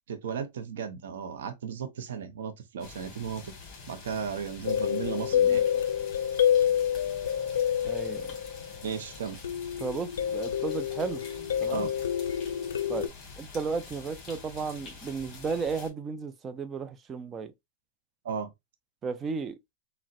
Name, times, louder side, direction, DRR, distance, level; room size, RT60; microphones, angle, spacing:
voice 1, 0.1-3.5 3.9-5.6 8.8-9.4 11.7-11.9 18.2-18.5, right 7 dB, 75° right, 0.7 m, -35 dB
sound 1, 2.8-15.9, left 4 dB, 35° left, 1.6 m, -47 dB
sound 2, 4.7-8.9 9.4-13.1, left 9 dB, 85° left, 0.3 m, -28 dB
voice 2, 7.8-8.3 9.8-11.2 11.6-11.9 12.9-17.5 19.0-19.6, right 5 dB, 20° right, 0.4 m, -34 dB
3.9 x 2.1 x 2.4 m
hypercardioid pair, 135°, 0 cm